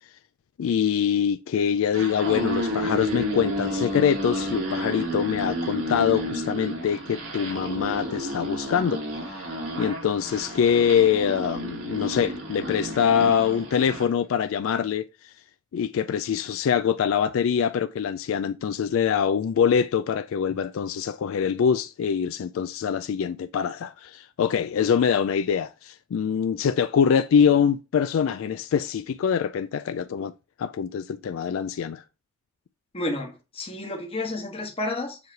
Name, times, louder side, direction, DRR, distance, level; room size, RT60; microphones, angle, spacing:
voice 1, 0.6-9.4 9.8-15.3 15.7-30.3 30.6-32.0, left 7 dB, 75° left, 0.3 m, -24 dB
sound 1, 1.8-14.1, equal, 85° right, 2.0 m, -31 dB
voice 2, 32.9-35.2, left 2 dB, 30° left, 1.3 m, -31 dB
7.2 x 3.2 x 4.5 m
head